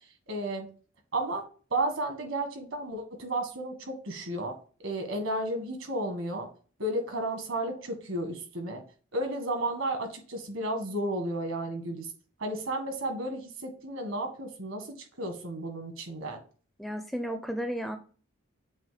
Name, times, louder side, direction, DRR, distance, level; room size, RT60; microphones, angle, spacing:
voice 1, 0.3-0.7 1.1-1.4 1.7-4.5 4.8-6.5 6.8-8.8 9.1-12.1 12.4-16.4, right 1 dB, 70° right, 4 dB, 1.6 m, -33 dB
voice 2, 16.8-18.0, equal, ahead, 7 dB, 0.4 m, -33 dB
7.5 x 2.6 x 5.0 m, 0.39 s
head